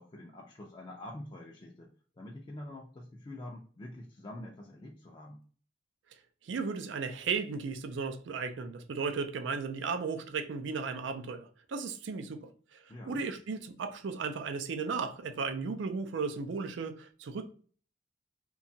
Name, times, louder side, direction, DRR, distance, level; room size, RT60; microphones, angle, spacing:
voice 1, 0.0-5.4 12.9-13.2, left 1 dB, 25° left, 0.4 m, -46 dB
voice 2, 6.4-17.5, right 5 dB, 85° right, 0.4 m, -35 dB
2.8 x 2.2 x 2.6 m
head